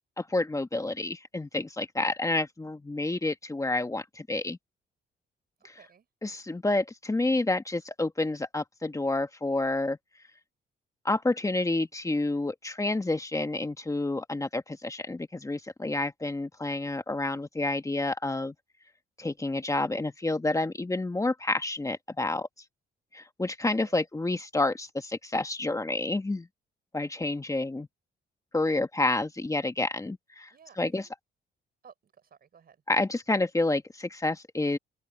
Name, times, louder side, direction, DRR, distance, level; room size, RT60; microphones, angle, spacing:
voice 1, 0.2-4.6 5.6-5.7 6.2-10.0 11.0-18.5 19.2-22.5 23.1-26.5 26.9-27.9 28.5-30.5 30.8-31.0 32.9-34.8, left 2 dB, 15° left, 1.5 m, -29 dB
voice 2, 5.7-6.1 23.6-24.1 30.5-31.1 31.8-32.8, right 7 dB, 50° right, 4.9 m, -55 dB
cardioid pair, 90°, 20 cm